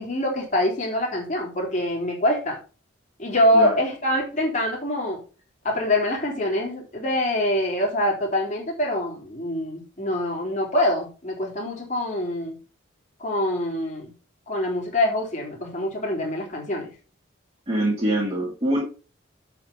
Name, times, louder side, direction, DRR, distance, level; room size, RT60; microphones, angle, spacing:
voice 1, 0.0-2.6 3.2-5.2 5.6-12.6 13.2-14.1 14.5-16.9, left 1 dB, 35° left, -2 dB, 3.4 m, -24 dB
voice 2, 17.7-18.8, right 1 dB, 30° right, -5 dB, 2.9 m, -24 dB
7.9 x 6.2 x 5.4 m, 0.36 s
head